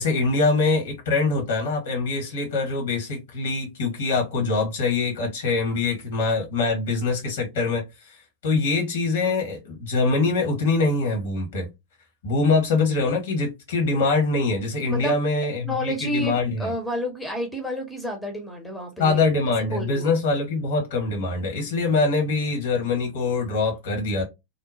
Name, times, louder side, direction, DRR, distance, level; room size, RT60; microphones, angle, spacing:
voice 1, 0.0-11.7 12.2-16.7 19.0-24.2, left 3 dB, 60° left, 1.3 m, -24 dB
voice 2, 14.9-15.2 15.6-19.2 19.7-20.1, equal, 5° left, 0.7 m, -30 dB
2.9 x 2.0 x 2.7 m
figure-of-eight pair, 90°, 0 cm